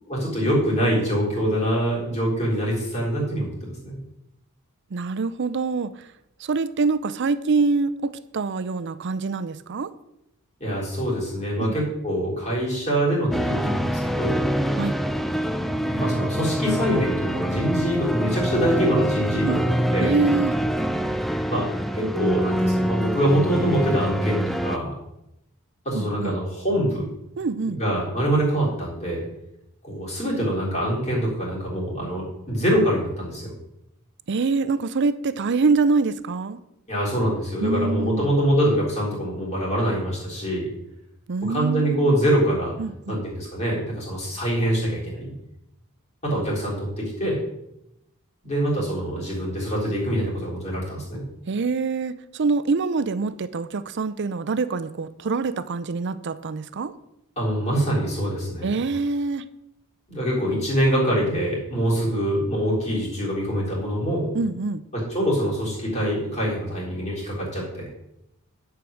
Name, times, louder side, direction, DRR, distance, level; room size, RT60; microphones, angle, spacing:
voice 1, 0.1-4.0 10.6-14.4 15.9-20.2 21.5-21.7 21.9-24.9 25.9-27.1 27.6-29.3 29.8-33.5 36.9-40.7 41.5-42.7 43.1-45.3 46.2-47.4 48.4-51.2 57.4-58.8 60.1-64.3 64.9-67.9, equal, 30° left, -5 dB, 3.8 m, -24 dB
voice 2, 4.9-5.9 6.4-9.9 11.6-11.8 14.7-14.9 16.4-16.6 19.4-19.6 20.0-20.5 25.9-26.4 27.4-27.8 34.3-36.6 37.6-38.3 41.3-42.2 42.8-43.2 51.5-56.9 58.6-59.4 64.3-64.8, right 4 dB, 50° right, 13 dB, 0.5 m, -25 dB
sound 1, 13.3-24.8, equal, ahead, 0.4 m, -25 dB
10.5 x 4.7 x 6.4 m, 0.85 s
head